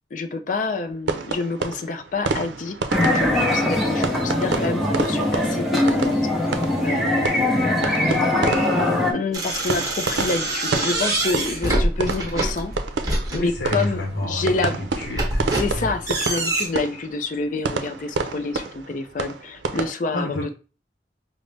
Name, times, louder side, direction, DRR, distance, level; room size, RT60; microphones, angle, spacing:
voice 1, 0.1-8.2 9.0-12.7 13.3-14.7 15.6-20.5, left 3 dB, 45° left, 9 dB, 0.4 m, -28 dB
sound 1, 1.1-19.9, right 4 dB, 80° right, 0.5 m, -30 dB
sound 2, 2.9-9.1, left 1 dB, ahead, 0.7 m, -21 dB
sound 3, 9.3-13.9 14.5-16.6, right 2 dB, 20° right, 1.0 m, -25 dB
voice 2, 13.3-15.5 20.1-20.5, left 1 dB, 65° left, 0 dB, 0.8 m, -29 dB
5.1 x 2.0 x 3.2 m, 0.35 s
head